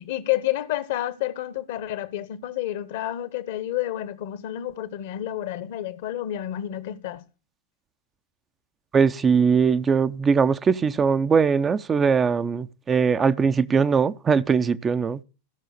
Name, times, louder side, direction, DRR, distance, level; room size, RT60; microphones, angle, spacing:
voice 1, 0.0-7.2, left 13 dB, 55° left, 1.1 m, -29 dB
voice 2, 8.9-15.2, right 6 dB, 20° right, 0.6 m, -21 dB
15.0 x 6.4 x 6.6 m
figure-of-eight pair, 90°, 0 cm